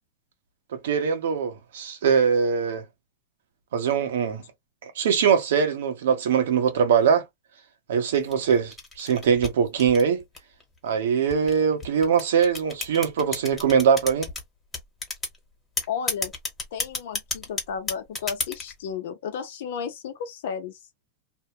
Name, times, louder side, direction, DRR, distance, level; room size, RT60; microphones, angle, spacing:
voice 1, 0.8-2.8 3.7-4.4 4.8-7.2 7.9-10.2 10.8-14.3, right 7 dB, 80° right, 1.0 m, -22 dB
sound 1, 8.1-10.6 11.3-14.4 14.7-15.4 15.8-18.7, left 3 dB, 15° left, 1.3 m, -31 dB
voice 2, 15.9-16.3 16.7-20.8, left 7 dB, 75° left, 0.8 m, -33 dB
2.7 x 2.2 x 2.9 m
supercardioid pair, 145°, 0 cm